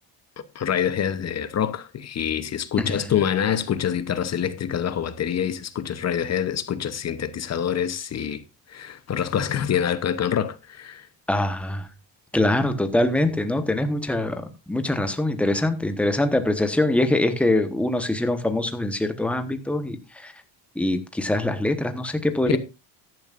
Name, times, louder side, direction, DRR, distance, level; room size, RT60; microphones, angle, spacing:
voice 1, 0.5-8.4 8.7-11.0, left 9 dB, 35° left, 0.9 m, -26 dB
voice 2, 2.8-3.1 11.3-11.9 12.3-20.3 20.7-22.6, left 1 dB, 5° left, 1.1 m, -23 dB
14.0 x 11.0 x 2.5 m
cardioid pair, 150°, 44 cm